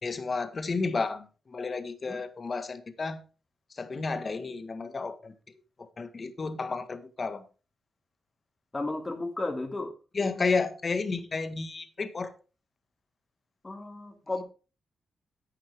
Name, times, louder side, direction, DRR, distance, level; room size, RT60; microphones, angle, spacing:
voice 1, 0.0-3.2 3.7-5.3 5.8-7.4 10.1-12.3, left 4 dB, 45° left, 1.6 m, -32 dB
voice 2, 8.7-9.9 13.6-14.4, left 2 dB, 30° left, 2.8 m, -33 dB
11.5 x 8.5 x 3.6 m
supercardioid pair, 55°, 0 cm